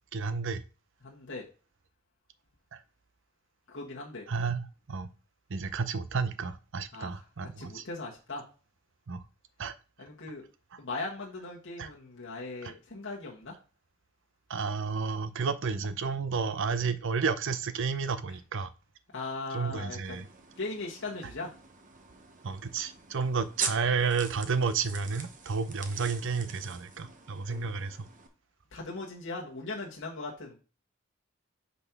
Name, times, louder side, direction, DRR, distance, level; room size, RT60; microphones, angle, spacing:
voice 1, 0.1-0.6 2.7-2.8 4.3-5.1 5.5-7.9 9.1-9.2 9.6-9.7 10.7-10.8 11.8-11.9 12.6-12.7 14.5-18.7 19.5-20.3 22.4-28.1, right 5 dB, 65° right, 0.6 m, -31 dB
voice 2, 1.0-1.4 3.7-4.2 6.9-7.2 7.6-8.4 10.0-10.4 10.8-13.5 19.1-20.3 20.6-21.5 27.4-27.7 28.7-30.6, left 3 dB, 60° left, 1.4 m, -39 dB
sound 1, 20.0-28.3, right 5 dB, 40° right, 0.9 m, -43 dB
5.5 x 4.1 x 5.9 m
head